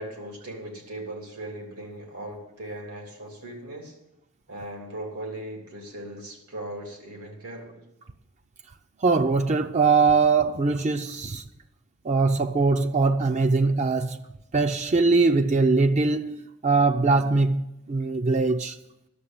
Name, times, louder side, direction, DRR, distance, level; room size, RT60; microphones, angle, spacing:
voice 1, 0.0-4.0 4.5-7.8, right 1 dB, 90° right, 3.1 m, -38 dB
voice 2, 9.0-11.4 12.0-14.2 14.5-18.8, right 4 dB, 30° right, 0.5 m, -22 dB
11.0 x 7.3 x 8.9 m
head